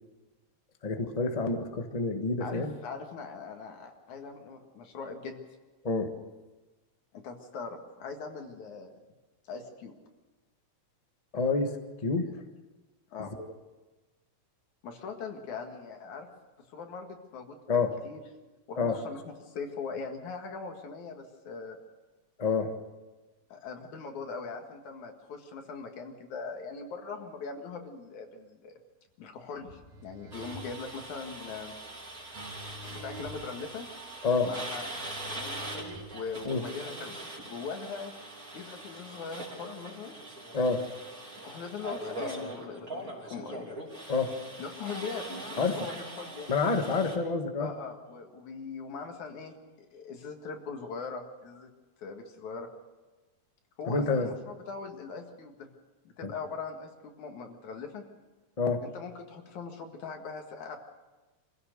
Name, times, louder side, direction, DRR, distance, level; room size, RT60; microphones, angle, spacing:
voice 1, 0.8-2.7 5.8-6.1 11.3-11.8 12.0-12.4 13.4-13.5 17.7-17.9 18.8-19.0 22.4-22.7 34.2-34.5 36.4-36.6 40.5-40.9 44.1-44.3 45.6-45.8 46.5-47.7 53.8-54.3 56.2-56.3 58.6-58.8, left 4 dB, 40° left, 5 dB, 0.5 m, -28 dB
voice 2, 2.4-5.4 7.1-8.9 9.5-9.9 13.1-13.3 14.8-16.3 16.7-18.2 18.7-21.8 23.5-28.8 29.2-31.8 32.9-33.9 34.4-38.1 38.5-40.2 41.4-43.8 44.6-46.5 47.6-51.7 52.0-52.7 53.8-55.7 56.2-58.0 58.8-60.8, left 5 dB, 75° left, 4 dB, 3.2 m, -41 dB
sound 1, 29.6-36.6, equal, 80° right, 3.6 m, -48 dB
sound 2, 30.3-47.2, right 1 dB, 30° right, 3.6 m, -42 dB
25.5 x 16.0 x 6.7 m, 1.2 s
omnidirectional pair, 3.5 m